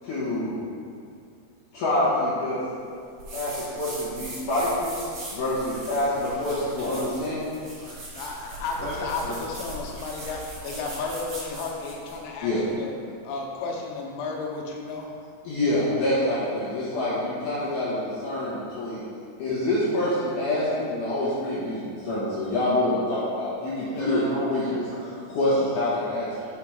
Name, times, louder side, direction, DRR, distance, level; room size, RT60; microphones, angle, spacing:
voice 1, 0.0-0.6 1.7-2.6 3.3-4.9 5.3-7.5 12.4-12.6 15.4-19.0 19.4-24.2 24.5-24.8 25.3-26.3, left 1 dB, 60° left, -10 dB, 2.1 m, -26 dB
sound 1, 3.2-12.2, right 1 dB, 60° right, 1.9 m, -40 dB
voice 2, 8.2-12.9 13.3-15.1 23.9-24.1, left 4 dB, 85° left, 0 dB, 3.6 m, -33 dB
voice 3, 8.8-9.4 15.6-15.8 23.9-25.4 26.4-26.5, equal, 75° right, -10 dB, 1.8 m, -33 dB
7.5 x 4.9 x 4.9 m, 2.3 s
omnidirectional pair, 5.8 m